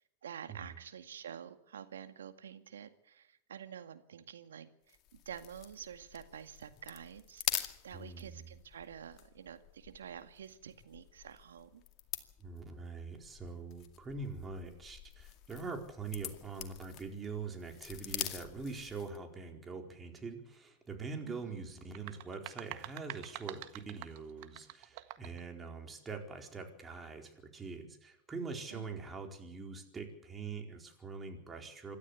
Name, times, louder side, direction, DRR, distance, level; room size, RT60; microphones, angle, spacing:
voice 1, 0.0-11.8 21.3-21.6 28.7-28.9, right 8 dB, 80° right, 8 dB, 2.0 m, -49 dB
sound 1, 4.9-19.3, left 12 dB, 45° left, 2.3 m, -45 dB
voice 2, 7.9-8.5 12.4-32.0, right 4 dB, 20° right, 3 dB, 4.4 m, -44 dB
sound 2, 21.8-25.4, right 16 dB, 55° right, 1.6 m, -47 dB
26.5 x 13.0 x 8.4 m, 0.79 s
hypercardioid pair, 100°, 0 cm